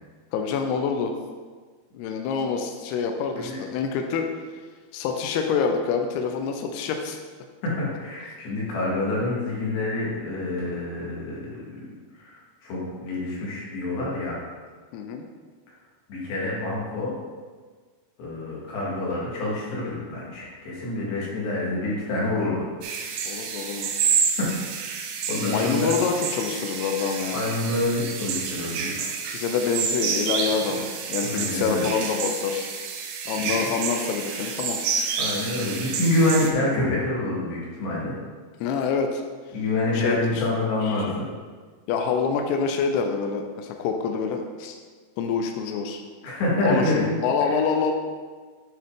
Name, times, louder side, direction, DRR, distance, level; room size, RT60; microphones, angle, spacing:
voice 1, 0.3-1.1 1.9-4.3 4.9-7.2 14.9-15.2 23.3-23.9 25.4-27.4 29.3-32.7 33.3-34.8 38.6-39.2 39.9-40.5 40.8-41.1 41.9-44.8 45.2-46.0 46.6-47.9, left 6 dB, 90° left, 4 dB, 2.3 m, -26 dB
voice 2, 7.6-11.9 12.2-14.4 16.1-17.2 18.2-22.7 24.4-24.5 25.3-25.9 27.3-29.2 31.2-31.9 33.4-33.5 35.2-38.2 39.5-41.3 46.2-47.2, left 2 dB, 70° left, -6 dB, 3.8 m, -27 dB
sound 1, 22.8-36.5, right 6 dB, 90° right, 3.0 m, -29 dB
9.1 x 4.7 x 3.6 m, 1.5 s
omnidirectional pair, 5.3 m